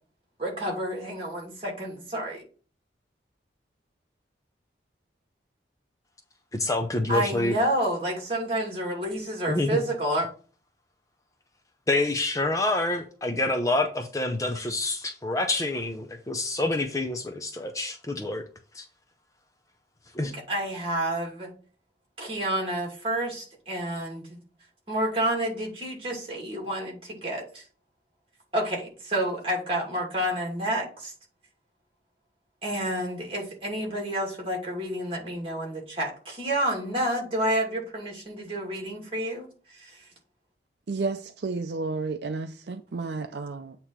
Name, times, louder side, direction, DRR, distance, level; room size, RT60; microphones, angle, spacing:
voice 1, 0.4-2.4 7.1-10.3 20.2-21.5 22.2-24.4 24.9-27.6 28.5-31.1 32.6-40.0, right 1 dB, 30° right, 2.5 m, -29 dB
voice 2, 6.5-7.6 9.5-9.8 11.9-18.4 18.7-18.9 20.1-20.3, left 2 dB, 20° left, 0.5 m, -27 dB
voice 3, 40.9-43.8, right 3 dB, 65° right, 0.5 m, -32 dB
8.3 x 3.0 x 6.0 m
head